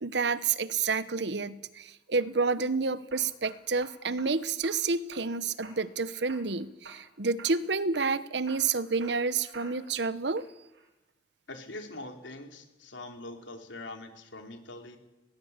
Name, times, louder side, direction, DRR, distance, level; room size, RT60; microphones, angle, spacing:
voice 1, 0.0-10.5, right 4 dB, 65° right, 16 dB, 1.0 m, -29 dB
sound 1, 2.2-2.6 3.1-4.3 4.6-5.3 5.6-6.0 6.3-7.1 7.4-7.6 7.9-10.0 10.4-10.9, right 3 dB, 85° right, 4.4 m, -50 dB
voice 2, 11.5-15.0, left 2 dB, 85° left, 5 dB, 3.5 m, -43 dB
21.0 x 18.0 x 8.2 m, 0.99 s
head